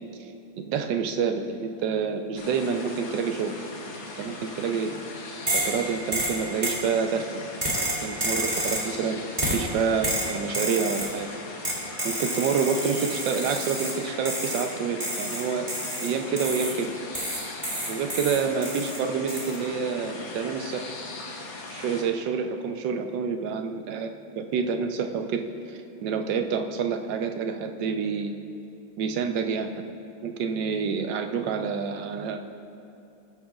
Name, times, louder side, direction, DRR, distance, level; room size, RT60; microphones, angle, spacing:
voice 1, 0.6-3.6 4.0-4.9 5.5-7.4 8.0-9.2 9.5-11.3 12.0-16.9 17.9-20.9 21.7-28.3 29.0-29.7 30.2-32.4, right 6 dB, 70° right, 6 dB, 1.3 m, -28 dB
sound 1, 2.4-22.0, left 2 dB, 75° left, 2.0 m, -40 dB
sound 2, 5.5-5.8 6.1-6.8 7.6-8.9 9.4-9.7 10.0-11.2 11.6-14.0 14.3-14.7 15.0-16.8 17.1-19.0 19.3-19.6, right 1 dB, 20° right, 2.3 m, -29 dB
20.0 x 9.4 x 2.4 m, 2.8 s
omnidirectional pair, 2.1 m